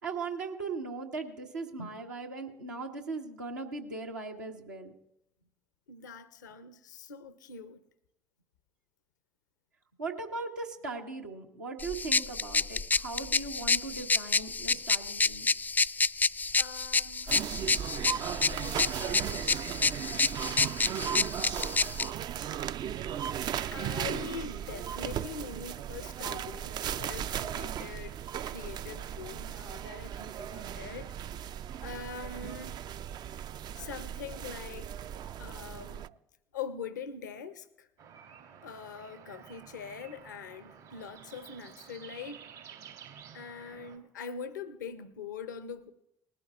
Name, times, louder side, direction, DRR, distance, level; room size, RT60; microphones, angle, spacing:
voice 1, 0.0-4.9 10.0-15.6, right 3 dB, 85° right, 1.3 m, -38 dB
voice 2, 5.9-7.8 16.5-17.6 18.5-20.4 23.7-28.2 28.5-31.2 31.8-32.9 33.8-35.1 35.4-36.1 36.5-37.9 38.6-42.5 43.3-45.9, left 6 dB, 80° left, 0.6 m, -43 dB
sound 1, 11.8-22.1, left 4 dB, 20° left, 0.4 m, -29 dB
sound 2, 17.3-36.1, right 9 dB, 45° right, 0.4 m, -37 dB
sound 3, 38.0-44.0, right 8 dB, 70° right, 2.7 m, -51 dB
20.0 x 12.0 x 2.4 m
figure-of-eight pair, 50°, 10 cm